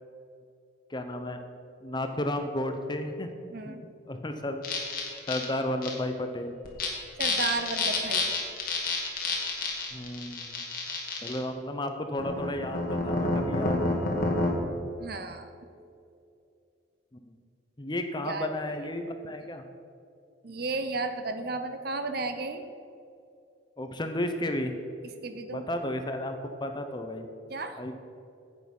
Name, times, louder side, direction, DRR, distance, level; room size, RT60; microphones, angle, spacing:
voice 1, 0.9-1.4 1.8-3.3 3.6-3.8 4.1-4.6 5.3-6.5 9.9-10.6 11.2-14.5 17.3-17.4 17.8-19.6 23.8-24.8 25.5-27.3 27.8-27.9, left 1 dB, 20° left, 6 dB, 0.7 m, -33 dB
voice 2, 3.5-3.8 7.2-8.6 15.0-15.5 18.2-18.5 20.4-22.6 25.2-25.6 27.5-27.8, right 3 dB, 50° right, 8 dB, 0.8 m, -33 dB
sound 1, 4.6-5.4 5.8-5.9 6.6-6.9 7.2-11.4 12.2-14.5, left 3 dB, 45° left, 1.9 m, -29 dB
10.5 x 8.6 x 5.4 m, 2.5 s
head